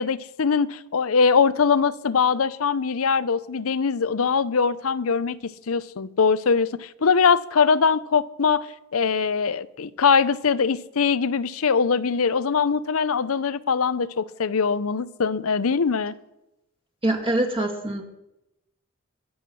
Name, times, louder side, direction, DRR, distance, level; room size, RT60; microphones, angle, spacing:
voice 1, 0.0-16.1, left 5 dB, 80° left, 0.6 m, -22 dB
voice 2, 17.0-18.0, right 1 dB, 25° right, 2.1 m, -24 dB
23.0 x 7.9 x 6.2 m
head